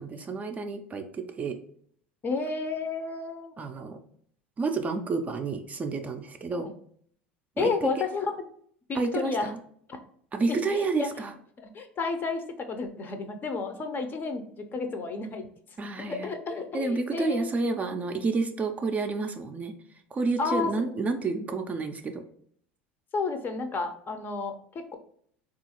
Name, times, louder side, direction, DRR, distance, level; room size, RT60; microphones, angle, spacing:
voice 1, 0.0-1.6 3.6-4.0 4.6-6.7 7.6-7.9 8.9-9.6 10.3-11.3 15.8-16.3 16.7-19.7 20.1-22.2, right 3 dB, 25° right, 5 dB, 0.4 m, -30 dB
voice 2, 2.2-3.5 6.5-6.7 7.6-8.3 8.9-9.5 9.9-10.0 10.5-11.1 11.6-15.5 16.0-17.6 20.4-20.7 23.1-24.9, left 4 dB, 30° left, 7 dB, 0.5 m, -31 dB
3.6 x 2.4 x 2.8 m, 0.63 s
hypercardioid pair, 80°, 6 cm